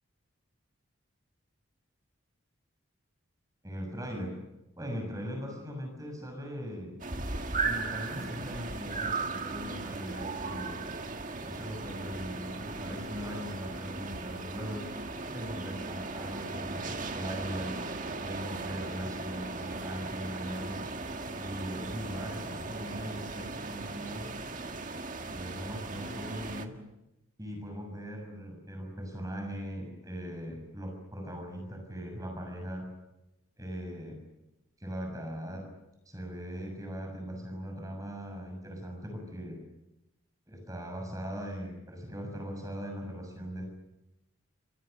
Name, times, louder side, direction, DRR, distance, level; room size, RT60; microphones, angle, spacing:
voice 1, 3.6-4.3 4.8-6.9 7.6-10.8 11.4-14.8 15.3-17.7 18.2-20.8 21.4-24.3 25.3-26.7 27.4-32.9 33.6-34.2 34.8-35.6 36.0-39.6 40.5-43.6, equal, 15° right, 2 dB, 6.7 m, -39 dB
sound 1, 7.0-26.6, right 3 dB, 40° right, 1.8 m, -37 dB
30.0 x 26.5 x 6.7 m, 0.92 s
head